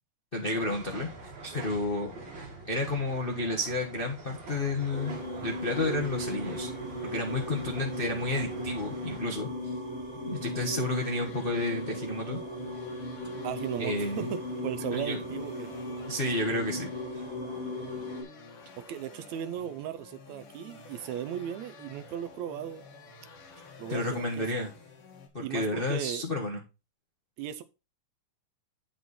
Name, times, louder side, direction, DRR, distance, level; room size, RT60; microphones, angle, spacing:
voice 1, 0.3-2.1 2.6-5.2 5.4-6.7 7.0-9.5 10.2-12.4 13.8-14.3 14.9-15.2 16.1-16.9 17.1-17.2 23.9-24.7 25.3-26.6, left 2 dB, 75° left, 1 dB, 0.5 m, -31 dB
sound 1, 0.5-9.2, right 3 dB, 40° right, 3.1 m, -45 dB
sound 2, 4.9-18.2, equal, ahead, 4.5 m, -37 dB
sound 3, 10.6-25.3, left 4 dB, 50° left, 2.4 m, -50 dB
voice 2, 13.4-15.7 18.8-22.9 23.8-24.6 25.4-26.2 27.4-27.6, right 10 dB, 75° right, 12 dB, 1.8 m, -37 dB
8.7 x 6.1 x 4.2 m, 0.28 s
omnidirectional pair, 3.6 m